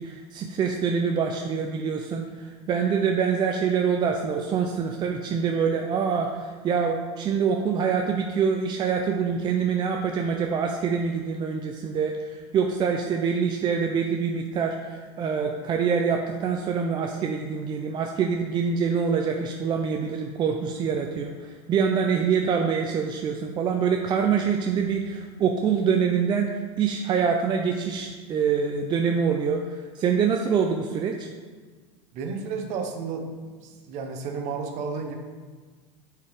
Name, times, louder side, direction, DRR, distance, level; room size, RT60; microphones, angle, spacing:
voice 1, 0.0-26.5 26.8-31.3, right 6 dB, 30° right, 3 dB, 0.5 m, -25 dB
voice 2, 32.1-35.2, right 5 dB, 50° right, 4 dB, 1.1 m, -32 dB
8.2 x 4.7 x 3.5 m, 1.5 s
supercardioid pair, 115°, 15 cm